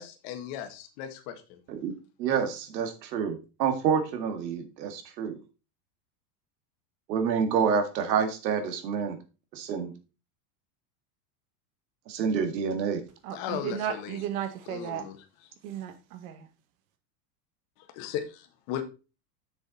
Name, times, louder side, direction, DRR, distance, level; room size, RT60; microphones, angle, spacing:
voice 1, 0.0-1.6 13.3-14.2 14.7-15.2 17.9-18.8, left 10 dB, 40° left, 7 dB, 1.4 m, -36 dB
voice 2, 2.2-5.4 7.1-9.2 9.5-9.9 12.1-13.0, right 6 dB, 80° right, 6 dB, 2.1 m, -28 dB
voice 3, 13.2-15.0 15.6-16.5, right 10 dB, 55° right, 8 dB, 1.5 m, -34 dB
7.0 x 6.8 x 4.1 m, 0.32 s
supercardioid pair, 170°, 50 cm